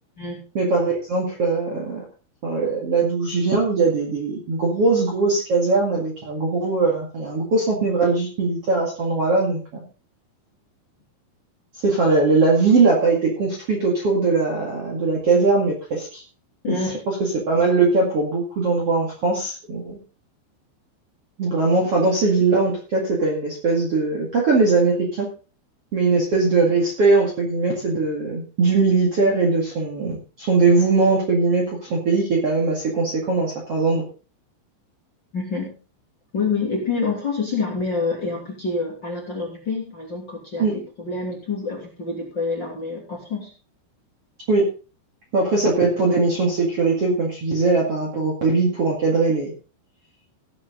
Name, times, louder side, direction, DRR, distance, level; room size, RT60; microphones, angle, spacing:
voice 1, 0.5-2.0 2.4-9.8 11.8-16.2 16.7-16.8 17.5-20.0 21.4-25.3 25.9-34.0 40.6-40.7 44.5-44.6 45.3-49.5, right 3 dB, 40° right, -2 dB, 2.3 m, -20 dB
voice 2, 16.6-17.0 35.3-35.7 36.3-43.5, left 4 dB, 30° left, -2 dB, 2.6 m, -27 dB
17.5 x 7.8 x 3.9 m, 0.35 s
omnidirectional pair, 5.4 m